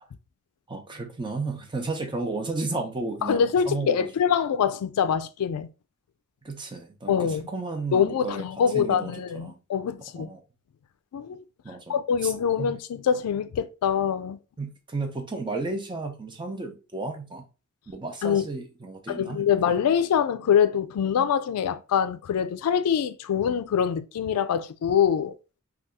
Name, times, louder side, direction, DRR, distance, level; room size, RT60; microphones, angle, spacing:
voice 1, 0.7-4.1 6.4-8.5 8.7-9.6 10.2-10.4 11.6-12.0 12.2-12.3 12.6-12.8 14.6-17.4 17.9-19.8, right 3 dB, 20° right, 0.6 m, -33 dB
voice 2, 3.2-5.7 7.1-7.5 7.9-10.3 11.1-11.4 11.9-14.4 18.2-18.4 19.1-25.3, left 8 dB, 90° left, 0.3 m, -24 dB
2.7 x 2.3 x 3.5 m
head